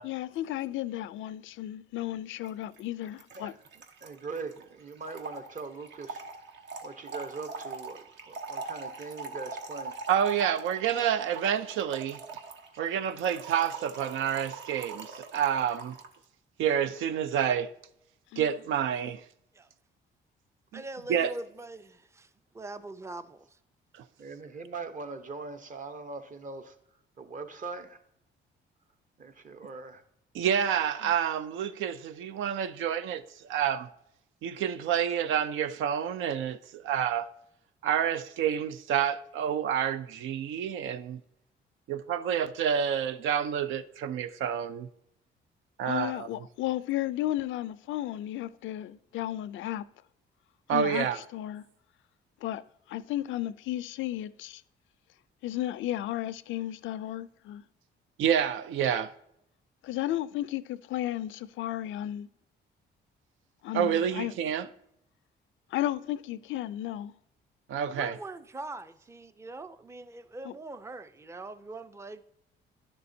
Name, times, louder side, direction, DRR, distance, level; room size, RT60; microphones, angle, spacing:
voice 1, 0.0-3.5 18.3-18.4 45.8-49.9 50.7-51.1 51.3-51.6 52.4-52.6 52.9-54.6 55.4-57.6 59.8-62.3 63.6-64.3 65.7-67.1 70.4-70.5, left 13 dB, 75° left, 0.4 m, -33 dB
Trickle dribble / Fill (with liquid), 2.4-2.5 2.8-2.9 3.1-16.2, right 4 dB, 65° right, 1.0 m, -42 dB
voice 2, 3.3-6.2 6.8-10.0 24.2-26.8 27.2-28.0 29.2-30.0, right 4 dB, 40° right, 0.9 m, -41 dB
voice 3, 10.1-12.2 12.8-16.0 16.6-17.7 18.4-19.2 20.7-20.8 21.1-21.3 30.3-33.9 34.4-37.3 37.8-41.2 41.9-44.9 45.8-46.3 50.7-51.2 58.2-59.1 63.7-64.7 67.7-68.2, right 9 dB, 80° right, 0.5 m, -28 dB
voice 4, 20.7-22.3 22.5-23.5 67.9-72.2, right 2 dB, 15° right, 0.5 m, -42 dB
10.5 x 6.8 x 2.7 m
cardioid pair, 90°, 20 cm